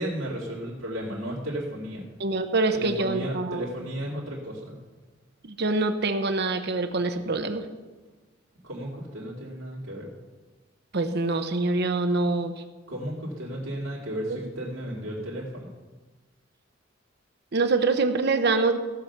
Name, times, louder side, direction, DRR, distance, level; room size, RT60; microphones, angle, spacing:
voice 1, 0.0-2.0 2.7-4.8 8.6-10.1 12.9-15.7, equal, 85° right, -4 dB, 2.3 m, -34 dB
voice 2, 2.2-3.6 5.4-7.6 10.9-12.5 14.3-14.4 17.5-18.8, right 3 dB, 55° right, 8 dB, 0.8 m, -25 dB
16.5 x 5.8 x 6.7 m, 1.3 s
head